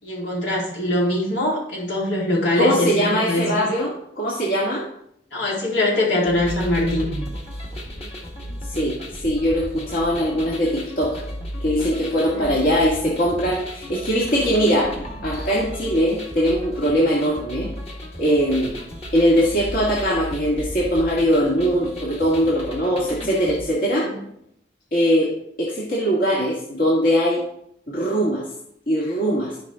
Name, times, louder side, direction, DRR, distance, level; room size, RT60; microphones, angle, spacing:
voice 1, 0.0-3.6 5.3-7.2 12.1-12.5 24.0-24.2, left 1 dB, 75° left, -5 dB, 3.9 m, -23 dB
voice 2, 2.6-4.8 8.7-11.2 11.6-15.0 15.2-17.7 18.2-18.8 19.1-24.1 24.9-25.3 25.6-27.4 27.9-28.4 28.9-29.6, equal, 50° left, -5 dB, 2.1 m, -21 dB
sound 1, 6.3-23.6, equal, 35° left, 1.8 m, -34 dB
13.5 x 5.4 x 3.7 m, 0.72 s
head